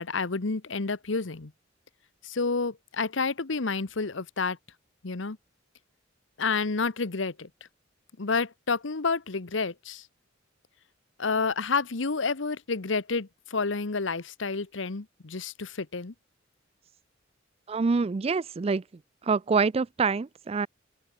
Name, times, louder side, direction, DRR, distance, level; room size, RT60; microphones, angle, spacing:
voice 1, 0.0-1.5 2.2-4.6 5.0-5.4 6.4-7.5 8.2-10.1 11.2-16.1, left 4 dB, 75° left, 1.1 m, -29 dB
voice 2, 17.7-18.8 19.3-20.7, right 4 dB, 30° right, 0.4 m, -26 dB
open air
head